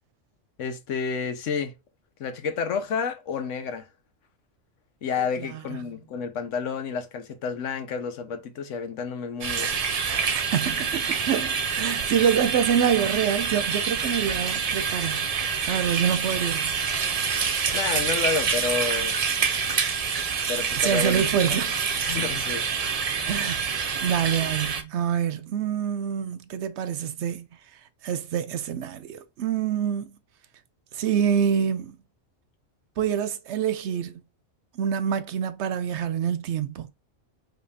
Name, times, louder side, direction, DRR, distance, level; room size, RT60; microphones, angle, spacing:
voice 1, 0.6-1.7 2.2-3.9 5.0-9.8 17.7-19.2 20.5-21.3 21.6-21.7 22.0-22.7, left 6 dB, 80° left, 1.1 m, -30 dB
voice 2, 5.2-5.6 10.3-16.8 20.8-21.8 23.3-27.5 28.0-30.1 30.9-32.0 33.0-34.2 34.7-36.9, right 8 dB, 70° right, 0.8 m, -26 dB
sound 1, 9.4-24.8, right 6 dB, 45° right, 0.5 m, -27 dB
5.3 x 3.2 x 2.8 m
omnidirectional pair, 1.3 m